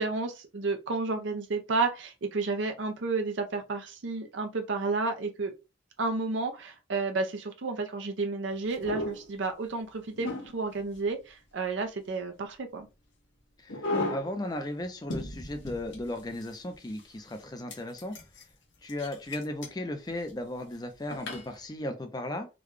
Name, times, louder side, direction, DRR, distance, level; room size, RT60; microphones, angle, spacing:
voice 1, 0.0-5.5 6.0-12.9, right 3 dB, 80° right, 0.6 m, -31 dB
sound 1, 8.7-9.3 10.1-10.9 13.7-14.4 14.8-14.9 15.1-16.6 17.0-17.1 17.7-18.4 18.9-19.7 20.1-20.3 21.1-21.5, left 1 dB, 85° left, 1.1 m, -35 dB
voice 2, 13.6-18.2 18.8-22.5, left 1 dB, 20° left, 0.5 m, -36 dB
3.8 x 2.2 x 3.2 m
head